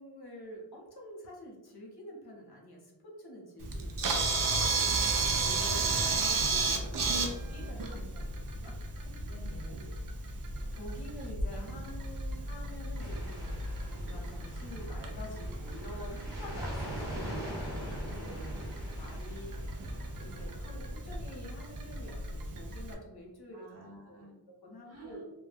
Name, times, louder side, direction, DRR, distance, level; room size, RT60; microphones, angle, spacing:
voice 1, 0.0-4.9 5.4-9.1 9.7-9.9 10.7-17.7 18.0-18.5 18.9-19.8 20.2-23.8 24.2-25.2, equal, 55° left, 0 dB, 0.8 m, -48 dB
Camera, 3.6-22.9, right 3 dB, 50° right, 0.4 m, -34 dB
voice 2, 4.9-5.2 6.9-7.7 9.3-9.7 18.0-18.5 23.5-24.3 24.8-25.2, right 2 dB, 30° right, -5 dB, 1.0 m, -51 dB
sound 1, 13.0-20.5, equal, 5° right, 0.9 m, -43 dB
2.2 x 2.1 x 3.3 m, 0.94 s
wide cardioid pair, 90°, 46 cm